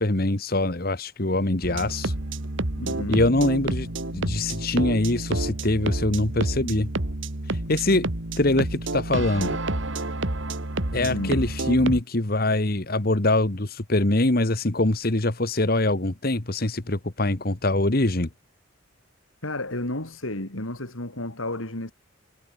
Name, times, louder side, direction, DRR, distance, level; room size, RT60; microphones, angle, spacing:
voice 1, 0.0-2.1 3.1-6.9 7.4-8.1 8.4-9.6 10.9-18.3, left 2 dB, 50° left, 1.5 m, -23 dB
sound 1, 1.6-12.0, right 2 dB, 70° right, 2.3 m, -29 dB
voice 2, 2.8-3.2 11.0-11.5 19.4-21.9, left 1 dB, 90° left, 4.2 m, -32 dB
head